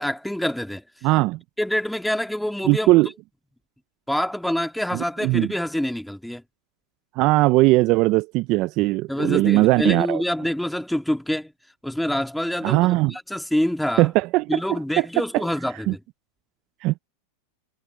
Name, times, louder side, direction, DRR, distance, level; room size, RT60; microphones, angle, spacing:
voice 1, 0.0-0.8 1.6-2.9 4.1-6.4 9.1-11.5 11.8-14.1 14.5-16.0, left 1 dB, ahead, 2.1 m, -26 dB
voice 2, 1.0-1.4 2.7-3.1 4.9-5.5 7.2-10.2 12.6-13.1 14.0-14.6 15.0-15.1 15.9-16.0 16.8-16.9, right 20 dB, 50° right, 0.5 m, -19 dB
hypercardioid pair, 110°, 0 cm